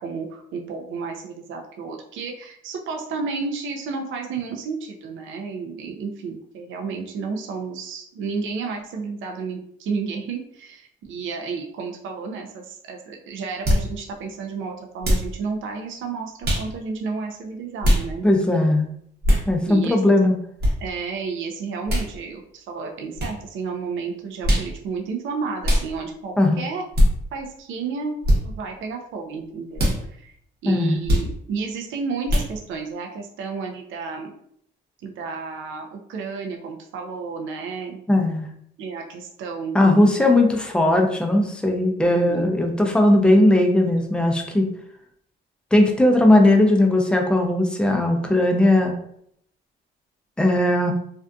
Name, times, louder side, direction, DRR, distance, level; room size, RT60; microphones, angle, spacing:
voice 1, 0.0-18.3 19.7-20.0 20.8-26.8 27.3-30.3 30.6-34.3 35.0-38.0 38.8-40.0 41.8-42.5, right 5 dB, 75° right, 2 dB, 0.4 m, -32 dB
sound 1, 13.6-13.9 15.0-15.3 16.4-16.7 17.8-18.0 19.2-19.5 20.6-20.7 21.9-22.1 23.2-23.3 24.4-24.7 25.6-25.9 26.9-27.1 28.2-28.4 29.7-30.0 31.1-31.3 32.3-32.5, equal, 55° right, 0.9 m, -19 dB
voice 2, 18.2-18.9 19.5-20.4 26.4-26.6 30.7-31.0 38.1-38.5 39.7-44.7 45.7-48.9 50.4-50.9, left 1 dB, 5° left, 2 dB, 0.4 m, -18 dB
2.5 x 2.4 x 2.2 m, 0.69 s
cardioid pair, 90°, 20 cm